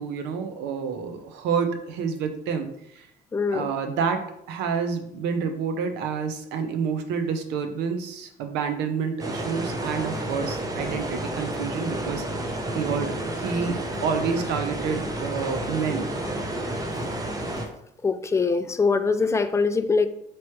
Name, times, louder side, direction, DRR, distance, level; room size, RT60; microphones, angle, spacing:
voice 1, 0.0-2.7 3.0-3.1 3.5-16.1, right 6 dB, 90° right, 7 dB, 0.6 m, -29 dB
voice 2, 3.3-3.7 18.0-20.1, left 4 dB, 15° left, 10 dB, 0.3 m, -23 dB
sound 1, 9.2-17.6, right 1 dB, 20° right, 0.7 m, -30 dB
4.5 x 3.0 x 3.0 m, 0.73 s
cardioid pair, 110°, 17 cm